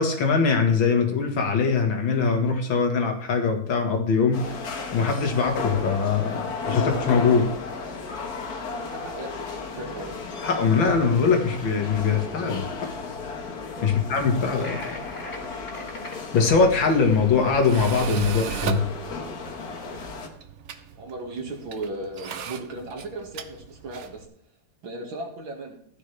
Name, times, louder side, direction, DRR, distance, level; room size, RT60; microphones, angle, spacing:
voice 1, 0.0-4.4 4.9-7.5 10.4-12.7 13.8-14.8 16.3-18.9, left 5 dB, 80° left, 3 dB, 2.5 m, -22 dB
sound 1, 4.3-20.3, left 4 dB, 55° left, 1.8 m, -34 dB
voice 2, 8.6-10.2 13.7-13.9 21.0-24.3 24.8-25.8, right 2 dB, 85° right, 2 dB, 2.8 m, -36 dB
sound 2, 14.6-16.2, left 2 dB, 40° left, 2.5 m, -39 dB
Tools, 16.3-24.2, right 9 dB, 65° right, 0.7 m, -35 dB
15.0 x 9.9 x 3.4 m, 0.66 s
omnidirectional pair, 2.1 m